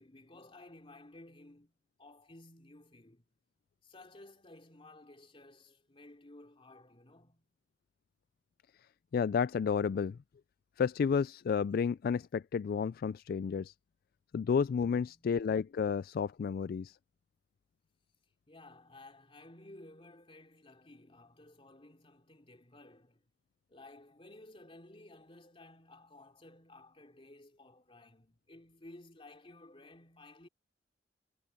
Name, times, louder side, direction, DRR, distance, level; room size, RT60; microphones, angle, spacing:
voice 1, 0.0-3.3 3.8-7.5 15.1-15.3 18.5-23.2 23.7-30.5, left 2 dB, 30° left, 3.0 m, -55 dB
voice 2, 9.1-10.2 10.8-13.7 14.3-17.0, left 6 dB, 55° left, 0.3 m, -31 dB
head